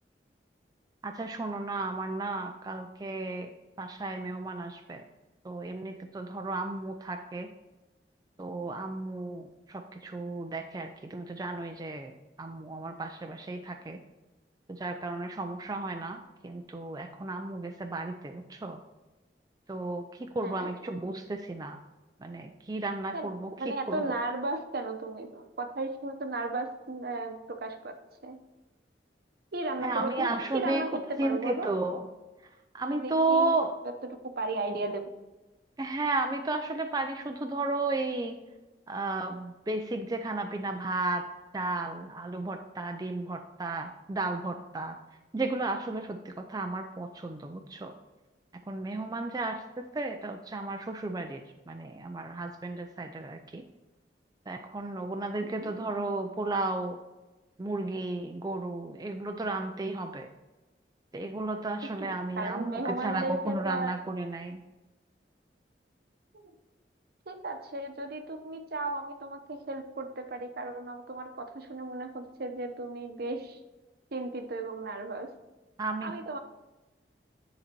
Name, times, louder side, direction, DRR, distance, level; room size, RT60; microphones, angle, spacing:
voice 1, 1.0-3.5 3.8-5.0 5.4-7.5 8.4-12.1 12.4-14.0 14.7-18.8 19.7-21.8 22.2-24.2 29.8-30.8 31.2-32.0 32.7-33.8 35.8-38.4 38.9-41.2 41.5-45.0 45.3-47.9 48.7-51.4 51.7-53.6 54.5-57.0 57.6-60.3 61.1-64.6 75.8-76.1, right 2 dB, 20° right, 4 dB, 0.4 m, -33 dB
voice 2, 20.4-20.7 23.1-23.3 23.6-27.9 28.2-28.4 29.5-31.9 32.9-33.5 33.8-35.1 55.4-55.7 61.8-63.9 66.3-66.5 67.3-73.6 74.1-75.3 76.0-76.4, right 2 dB, 60° right, 6 dB, 0.8 m, -35 dB
9.8 x 4.0 x 4.4 m, 1.1 s
head